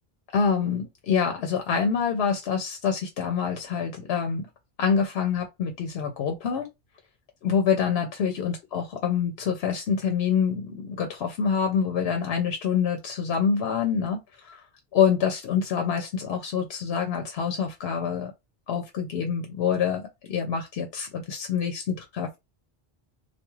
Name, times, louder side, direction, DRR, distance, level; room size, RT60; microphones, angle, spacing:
voice 1, 0.3-4.4 4.8-6.7 7.4-14.6 14.9-18.3 18.7-22.4, left 7 dB, 85° left, 0.9 m, -26 dB
2.3 x 2.3 x 3.0 m
omnidirectional pair, 1.0 m